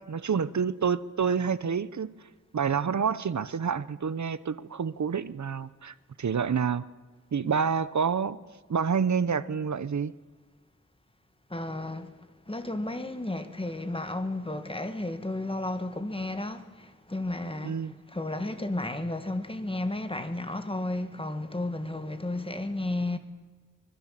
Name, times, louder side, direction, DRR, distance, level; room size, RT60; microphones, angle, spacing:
voice 1, 0.0-2.1 2.5-6.9 7.3-8.4 8.7-10.1 17.6-17.9, right 6 dB, 65° right, 0.8 m, -28 dB
voice 2, 11.5-12.1 12.5-23.2, left 2 dB, 15° left, 1.8 m, -33 dB
25.0 x 21.5 x 7.6 m
wide cardioid pair, 95°, 31 cm